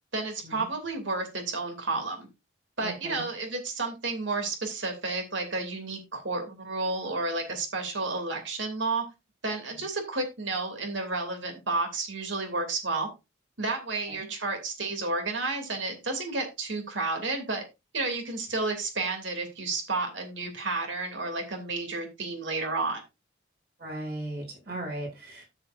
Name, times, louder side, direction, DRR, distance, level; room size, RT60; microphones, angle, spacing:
voice 1, 0.1-2.3 2.8-9.0 9.4-13.1 13.6-17.6 17.9-23.0, right 3 dB, 70° right, 4 dB, 2.7 m, -31 dB
voice 2, 2.8-3.2 14.1-14.2 23.8-25.4, right 1 dB, 50° right, -1 dB, 6.1 m, -37 dB
12.5 x 7.1 x 2.6 m, 0.25 s
head